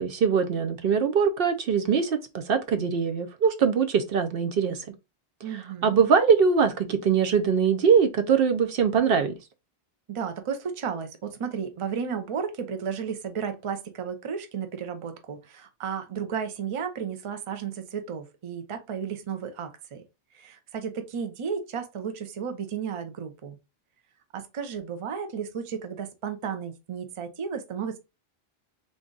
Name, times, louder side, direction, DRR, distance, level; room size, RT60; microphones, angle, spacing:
voice 1, 0.0-4.8 5.8-9.3, right 6 dB, 70° right, 0.7 m, -22 dB
voice 2, 5.4-6.0 10.1-20.0 20.3-23.6 24.3-28.0, right 7 dB, 40° right, 0.5 m, -33 dB
3.8 x 2.3 x 3.8 m
omnidirectional pair, 1.0 m